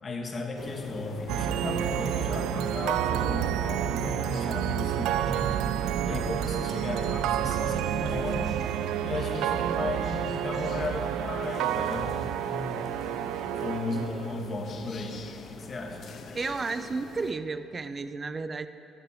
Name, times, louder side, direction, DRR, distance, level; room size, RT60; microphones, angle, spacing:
voice 1, 0.0-5.6 6.0-8.6 9.0-12.9 13.6-15.2 15.5-16.1, left 3 dB, 40° left, 2 dB, 1.9 m, -35 dB
sound 1, 0.6-17.3, left 5 dB, 55° left, 0.9 m, -43 dB
sound 2, 1.3-14.6, right 11 dB, 80° right, 0.3 m, -29 dB
sound 3, 3.0-7.7 8.3-8.6 8.9-9.0, left 3 dB, 75° left, 2.1 m, -51 dB
voice 2, 16.3-18.7, right 4 dB, 30° right, 12 dB, 0.6 m, -32 dB
15.0 x 6.8 x 8.3 m, 3.0 s
cardioid pair, 90°, 0 cm